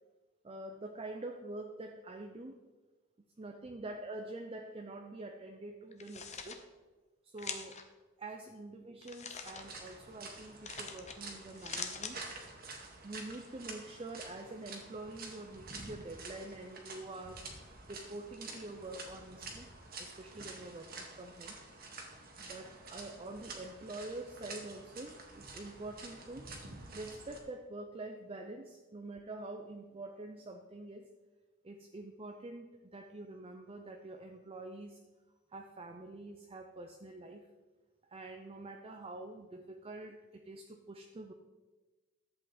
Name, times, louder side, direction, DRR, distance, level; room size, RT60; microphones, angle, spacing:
voice 1, 0.4-2.7 3.4-6.6 7.2-7.8 8.2-12.2 13.0-17.4 17.9-19.7 20.0-21.6 22.4-26.6 26.9-31.1 31.6-35.0 35.5-37.5 38.1-41.3, right 2 dB, 30° right, 4 dB, 0.6 m, -46 dB
sound 1, 5.9-6.6 7.4-7.8 9.0-9.6 10.6-11.2 11.5-12.1, left 6 dB, 35° left, 0.9 m, -43 dB
sound 2, 9.4-27.4, right 3 dB, 50° right, 1.7 m, -49 dB
11.5 x 7.8 x 4.3 m, 1.2 s
head